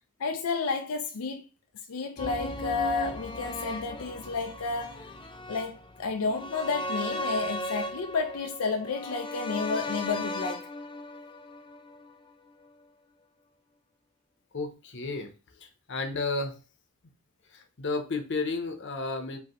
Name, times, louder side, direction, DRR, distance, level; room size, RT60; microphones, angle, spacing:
voice 1, 0.2-1.4 1.9-5.1 5.5-10.7, left 4 dB, 90° left, 0.5 m, -31 dB
sound 1, 2.2-12.3 12.6-12.7, left 1 dB, 20° left, 0.4 m, -37 dB
voice 2, 14.5-15.3 15.6-16.6 17.5-19.4, left 3 dB, 55° left, 0.8 m, -32 dB
5.2 x 2.8 x 3.0 m
head